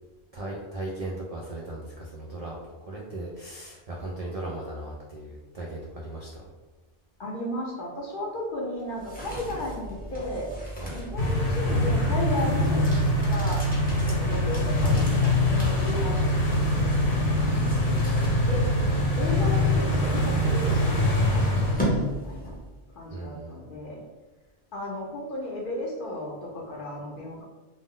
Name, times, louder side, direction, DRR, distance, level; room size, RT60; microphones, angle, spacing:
voice 1, 0.3-6.3 10.8-11.0 18.9-19.0 23.1-23.6, right 2 dB, 70° right, -3 dB, 0.3 m, -37 dB
voice 2, 7.2-10.5 10.9-13.6 14.1-18.7 19.2-22.5 22.9-24.0 24.7-27.4, left 1 dB, 55° left, -2 dB, 0.7 m, -35 dB
sound 1, 8.8-22.9, right 1 dB, 10° left, 0.5 m, -35 dB
sound 2, 11.2-21.8, left 1 dB, 75° left, 1.1 m, -24 dB
2.5 x 2.0 x 3.6 m, 1.2 s
omnidirectional pair, 1.1 m